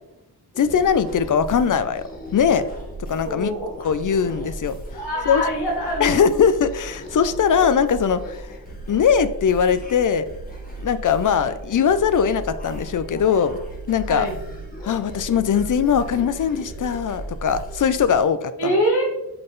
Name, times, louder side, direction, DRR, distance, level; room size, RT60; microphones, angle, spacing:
sound 1, 0.5-18.2, right 1 dB, 20° left, 1.5 m, -36 dB
voice 1, 0.6-2.0 2.3-2.7 3.0-3.5 3.8-4.8 5.3-5.4 6.0-8.5 8.9-10.2 10.8-13.6 13.9-14.3 14.8-18.8, left 7 dB, 50° left, 13 dB, 0.5 m, -20 dB
voice 2, 3.2-3.7 4.9-6.3 14.1-14.3 18.6-19.0, equal, 75° left, -3 dB, 1.7 m, -24 dB
7.8 x 3.7 x 3.9 m, 0.92 s
wide cardioid pair, 155°, 40 cm